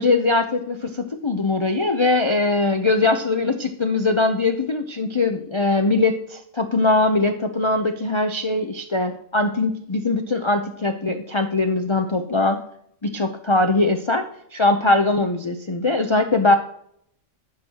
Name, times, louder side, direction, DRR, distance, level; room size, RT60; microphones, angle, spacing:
voice 1, 0.0-12.6 13.0-14.2 14.5-16.5, left 2 dB, 45° left, 5 dB, 0.3 m, -21 dB
15.5 x 6.2 x 2.8 m, 0.70 s
omnidirectional pair, 1.4 m